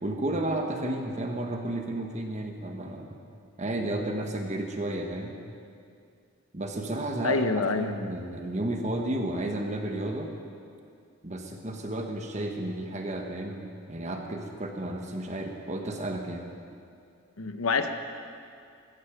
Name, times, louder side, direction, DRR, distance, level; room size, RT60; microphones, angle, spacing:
voice 1, 0.0-3.1 3.6-5.4 6.5-7.5 7.8-10.3 11.2-16.4, right 1 dB, 35° right, 3 dB, 1.4 m, -32 dB
voice 2, 7.2-8.0 17.4-17.9, left 4 dB, 85° left, 8 dB, 0.9 m, -26 dB
15.0 x 13.5 x 5.2 m, 2.4 s
head